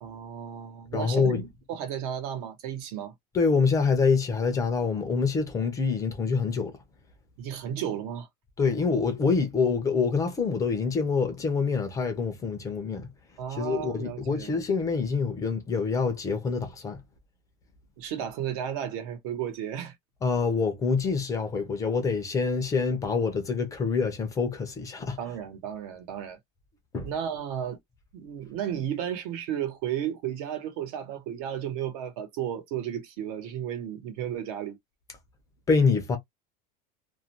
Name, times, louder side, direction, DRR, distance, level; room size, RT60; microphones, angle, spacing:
voice 1, 0.0-3.1 7.4-8.3 13.4-14.5 18.0-20.0 25.2-26.4 27.0-27.8 28.1-34.8, right 9 dB, 65° right, 1.0 m, -33 dB
voice 2, 0.9-1.4 3.3-6.7 8.6-13.1 13.5-17.0 20.2-25.2 26.9-27.1 35.7-36.2, left 5 dB, 15° left, 0.5 m, -26 dB
2.4 x 2.1 x 2.8 m
cardioid pair, 170°, 20 cm